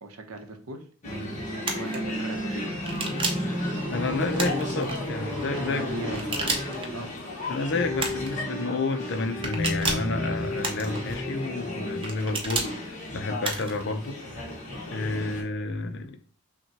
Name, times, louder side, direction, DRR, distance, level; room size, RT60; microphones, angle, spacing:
voice 1, 0.0-0.8 1.1-1.2 1.7-2.8 4.3-4.8 5.7-6.7 6.9-7.1, right 2 dB, 80° right, 5 dB, 0.8 m, -40 dB
sound 1, 1.0-15.4, left 1 dB, 35° left, 1.2 m, -34 dB
sound 2, 1.6-2.0 2.9-3.5 4.4-5.0 6.1-6.9 8.0-8.4 9.4-10.1 10.6-11.2 12.0-12.7 13.4-13.8, right 3 dB, 25° right, 0.6 m, -31 dB
sound 3, 2.5-7.2, equal, 10° right, 0.9 m, -32 dB
voice 2, 3.9-5.9 7.5-14.5 14.9-16.2, left 3 dB, 55° left, 8 dB, 0.5 m, -30 dB
5.7 x 2.2 x 2.8 m, 0.44 s
head